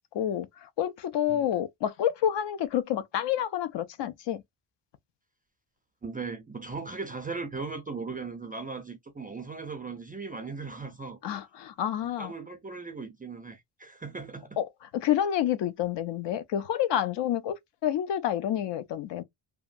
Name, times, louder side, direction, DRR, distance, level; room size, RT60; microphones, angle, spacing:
voice 1, 0.1-4.4 11.2-12.3 14.6-14.7 14.9-19.2, left 10 dB, 60° left, 0.5 m, -29 dB
voice 2, 6.0-11.2 12.2-14.6, right 4 dB, 20° right, 0.3 m, -38 dB
2.8 x 2.2 x 2.5 m
cardioid pair, 105°, 49 cm